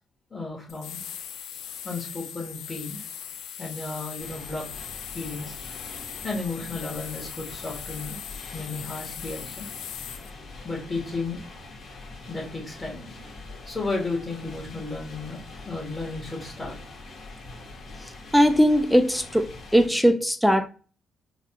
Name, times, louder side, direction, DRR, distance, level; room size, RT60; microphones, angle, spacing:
voice 1, 0.3-1.0 1.8-3.0 3.6-4.6 5.1-5.5 6.2-8.2 8.5-9.7 10.6-11.4 12.3-13.0 13.7-15.4 15.6-16.7, left 3 dB, 25° left, 1.7 m, -33 dB
sound 1, 0.7-10.3, left 9 dB, 80° left, 0.4 m, -39 dB
sound 2, 4.2-19.9, left 3 dB, 60° left, 1.8 m, -43 dB
voice 2, 18.3-20.7, equal, ahead, 0.4 m, -20 dB
3.9 x 2.4 x 2.8 m
cardioid pair, 90°, 0 cm